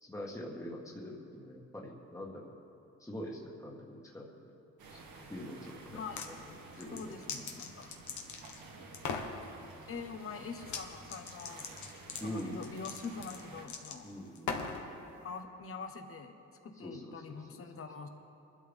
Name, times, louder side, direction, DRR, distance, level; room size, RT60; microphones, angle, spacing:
voice 1, 0.0-2.5 3.0-4.5 4.9-5.0 5.3-6.0 6.3-7.1 12.2-12.6 14.0-14.6 16.8-17.8, equal, 10° left, -2 dB, 1.7 m, -44 dB
sound 1, 4.8-13.6, right 3 dB, 85° right, 2.3 m, -52 dB
sound 2, 5.9-6.3 6.7-8.6 8.9-9.3 10.6-10.8 11.1-14.8, left 5 dB, 70° left, 1.4 m, -40 dB
voice 2, 5.9-6.2 6.9-7.9 9.9-11.7 12.2-14.1 15.2-16.3 16.6-18.1, left 5 dB, 45° left, 6 dB, 1.3 m, -44 dB
22.5 x 12.0 x 3.6 m, 2.7 s
cardioid pair, 90°, 30 cm